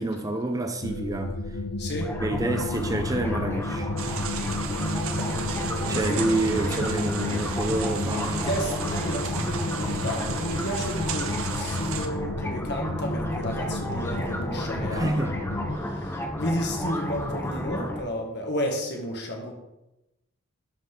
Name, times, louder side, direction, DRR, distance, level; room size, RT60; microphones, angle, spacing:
voice 1, 0.0-1.3 2.2-3.9 5.9-8.5 14.9-15.3, right 2 dB, 15° right, 0.5 m, -28 dB
sound 1, 0.8-15.8, left 2 dB, 70° left, 0.7 m, -33 dB
voice 2, 1.8-2.1 5.1-5.6 6.1-6.3 8.0-15.2 15.8-19.5, equal, 55° left, 1.7 m, -32 dB
sick frogs, 2.0-18.0, equal, 10° left, 0.8 m, -32 dB
sound 2, 4.0-12.1, right 7 dB, 70° right, 0.8 m, -35 dB
11.5 x 5.1 x 3.9 m
head